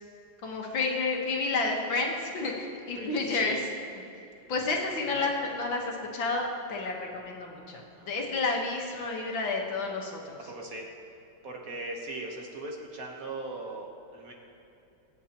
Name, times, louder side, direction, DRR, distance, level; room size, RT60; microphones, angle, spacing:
voice 1, 0.4-3.6 4.5-10.4, left 3 dB, 80° left, 0 dB, 2.1 m, -30 dB
voice 2, 2.9-3.6 5.0-5.6 7.9-8.5 10.5-10.9 11.4-14.3, right 2 dB, 50° right, 0 dB, 1.5 m, -40 dB
24.5 x 8.3 x 3.0 m, 2.8 s
omnidirectional pair, 2.1 m